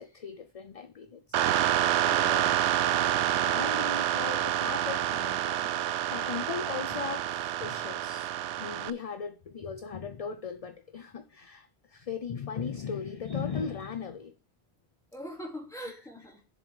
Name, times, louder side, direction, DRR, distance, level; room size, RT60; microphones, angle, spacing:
voice 1, 0.0-1.4 1.6-2.5 2.8-7.3 7.6-8.3 8.6-14.3, left 6 dB, 40° left, 0.6 m, -38 dB
sound 1, 1.3-8.9, right 12 dB, 85° right, 0.9 m, -28 dB
voice 2, 1.6-2.3 15.1-16.5, equal, 5° left, 2.7 m, -43 dB
7.1 x 7.1 x 4.8 m
omnidirectional pair, 1.1 m